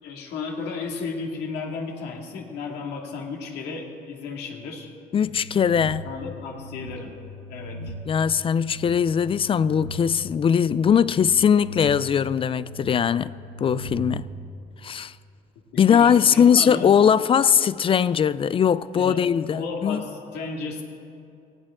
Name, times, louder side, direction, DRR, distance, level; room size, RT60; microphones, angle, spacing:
voice 1, 0.0-4.9 6.0-7.1 7.5-7.9 15.9-17.0 18.9-19.2 19.5-20.8, left 4 dB, 80° left, 2.2 m, -33 dB
voice 2, 5.1-6.1 8.1-13.3 13.6-14.3 14.8-15.1 15.8-20.0, left 7 dB, 30° left, 0.4 m, -20 dB
sound 1, 5.2-14.3, left 1 dB, 70° right, 2.6 m, -39 dB
18.5 x 14.5 x 3.7 m
cardioid pair, 110°, 17 cm